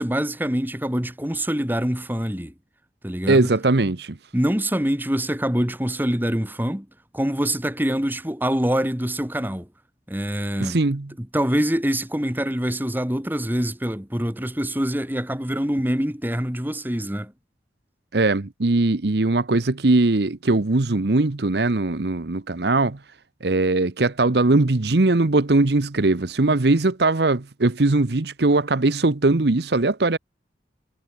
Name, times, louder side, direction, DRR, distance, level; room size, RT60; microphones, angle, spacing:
voice 1, 0.0-2.5 3.0-3.5 4.3-6.9 7.1-9.7 10.1-10.8 11.2-17.3, equal, 10° right, 2.3 m, -25 dB
voice 2, 3.3-4.2 10.6-11.1 18.1-23.0 23.4-30.2, right 2 dB, 65° right, 0.9 m, -20 dB
head